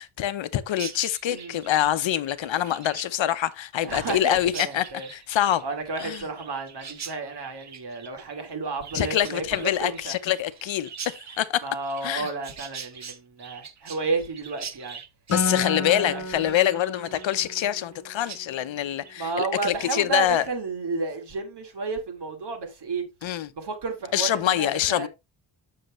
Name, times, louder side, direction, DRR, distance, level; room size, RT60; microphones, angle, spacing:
voice 1, 0.0-4.8 5.1-5.6 6.0-6.2 8.9-11.6 12.0-12.3 15.3-20.4 23.2-23.5 24.1-25.1, left 12 dB, 75° left, 0.8 m, -25 dB
Chirp tweet, 0.7-18.0 18.3-18.4 18.8-19.2 19.5-20.0, right 7 dB, 35° right, 0.8 m, -43 dB
voice 2, 1.3-1.8 3.8-5.1 5.6-10.2 11.6-15.0 15.4-16.5 19.2-23.0 23.5-25.1, right 4 dB, 60° right, 2.7 m, -32 dB
Acoustic guitar, 15.3-18.7, left 4 dB, 35° left, 0.9 m, -32 dB
8.0 x 6.6 x 3.1 m
wide cardioid pair, 125°, 47 cm